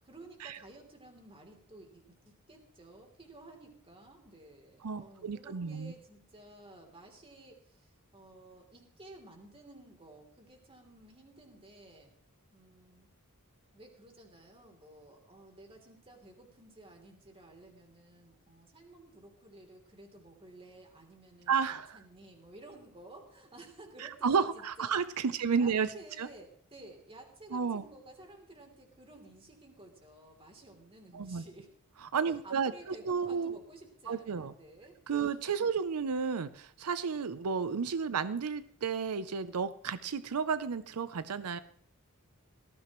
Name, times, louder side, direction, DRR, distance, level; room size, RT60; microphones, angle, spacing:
voice 1, 0.0-12.1 12.5-13.1 13.7-24.9 25.3-31.7 32.3-35.7, right 2 dB, 25° right, 2 dB, 3.1 m, -54 dB
voice 2, 4.8-5.9 21.5-22.0 24.0-25.9 26.2-26.3 27.5-27.8 31.1-31.4 32.1-32.7 33.1-33.6 34.1-34.5 35.1-41.6, right 6 dB, 85° right, 13 dB, 0.6 m, -32 dB
18.5 x 14.5 x 3.1 m, 0.62 s
head